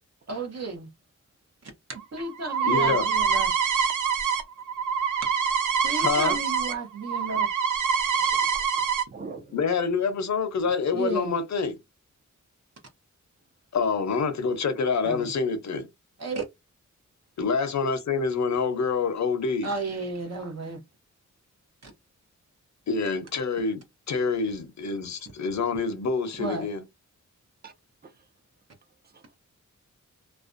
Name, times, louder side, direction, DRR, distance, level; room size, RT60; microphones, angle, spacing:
voice 1, 0.3-0.9 1.6-1.7 2.1-3.5 5.8-7.5 10.9-11.3 15.0-15.3 16.2-16.4 19.6-20.8 21.8-21.9 26.4-26.7, right 3 dB, 55° right, 0.8 m, -33 dB
sound 1, 2.0-6.7 7.0-9.0, right 6 dB, 80° right, 0.5 m, -25 dB
voice 2, 2.6-3.0 6.0-6.4 9.5-11.8 13.7-15.9 17.4-19.7 22.9-23.8 24.1-26.8, left 5 dB, 65° left, 0.6 m, -26 dB
voice 3, 9.1-9.6 27.6-27.7 28.0-28.1 29.1-29.4, right 4 dB, 30° right, 0.5 m, -42 dB
2.4 x 2.1 x 2.5 m
wide cardioid pair, 130°, 31 cm